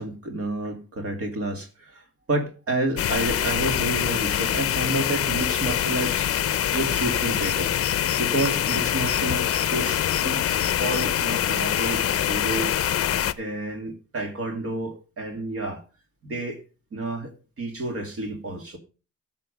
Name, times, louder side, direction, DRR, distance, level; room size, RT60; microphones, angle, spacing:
voice 1, 0.0-6.3 6.7-7.7 8.2-12.8 13.4-15.8 16.2-16.6 16.9-18.8, right 2 dB, 50° right, 2.3 m, -30 dB
sound 1, 3.0-13.3, left 10 dB, 50° left, 0.7 m, -24 dB
15.0 x 6.2 x 5.2 m
cardioid pair, 90°, 30 cm